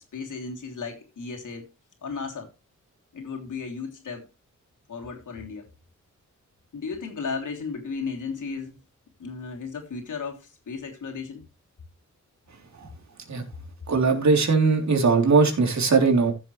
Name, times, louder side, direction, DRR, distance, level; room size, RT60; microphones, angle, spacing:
voice 1, 0.1-1.7 2.0-2.5 3.1-4.2 4.9-5.7 6.7-8.8 9.2-11.4, left 5 dB, 80° left, 3.3 m, -34 dB
voice 2, 13.9-16.3, right 4 dB, 65° right, 3.4 m, -20 dB
15.5 x 7.1 x 3.2 m
wide cardioid pair, 115°, 30 cm